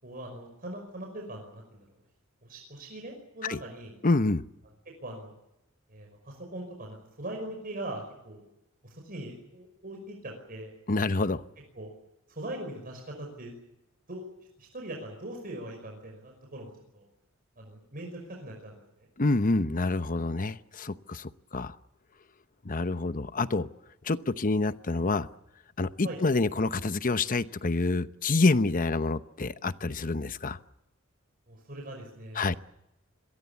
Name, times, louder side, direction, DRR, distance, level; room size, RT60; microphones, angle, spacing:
voice 1, 0.0-1.9 2.4-4.0 4.9-5.3 5.9-8.4 8.8-10.7 11.1-11.3 11.7-11.9 12.3-13.5 14.1-14.2 14.6-17.1 17.6-19.1 26.0-26.2 31.5-32.6, right 1 dB, 45° right, 1 dB, 5.5 m, -41 dB
voice 2, 4.0-4.4 10.9-11.4 19.2-21.7 22.6-23.7 24.0-25.3 25.8-30.6 32.4-32.5, left 3 dB, 40° left, 12 dB, 0.9 m, -27 dB
27.5 x 22.5 x 7.2 m, 0.88 s
head